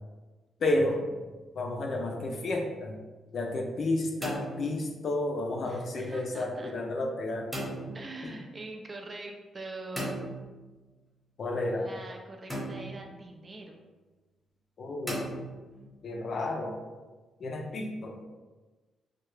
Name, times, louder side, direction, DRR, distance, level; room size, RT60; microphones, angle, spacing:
voice 1, 0.6-1.0 1.5-3.0 3.3-7.5 8.2-8.3 11.4-11.9 14.8-15.3 16.0-16.8 17.4-18.2, left 2 dB, 45° left, 2 dB, 0.4 m, -31 dB
sound 1, 0.8-1.4 3.9-5.2 7.5-8.1 10.0-10.9 12.5-13.2 15.1-15.9, equal, 5° left, 0.8 m, -38 dB
voice 2, 5.6-6.7 7.9-10.3 11.7-13.8, right 2 dB, 25° right, 2 dB, 0.3 m, -43 dB
3.3 x 2.3 x 3.2 m, 1.3 s
cardioid pair, 155°, 0 cm